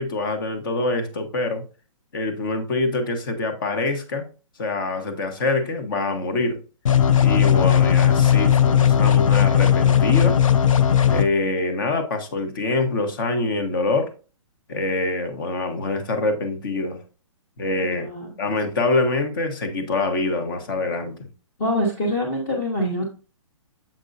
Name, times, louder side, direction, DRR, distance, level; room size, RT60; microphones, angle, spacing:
voice 1, 0.0-1.6 2.1-4.2 4.6-6.6 7.2-10.4 11.1-14.1 14.7-17.0 17.6-18.1 18.4-21.3, left 2 dB, 40° left, 1.1 m, -25 dB
sound 1, 6.9-11.2, left 9 dB, 75° left, 0.6 m, -17 dB
voice 2, 17.8-18.3 21.6-23.1, equal, 20° left, 1.0 m, -25 dB
7.5 x 5.2 x 2.6 m
hypercardioid pair, 175°, 17 cm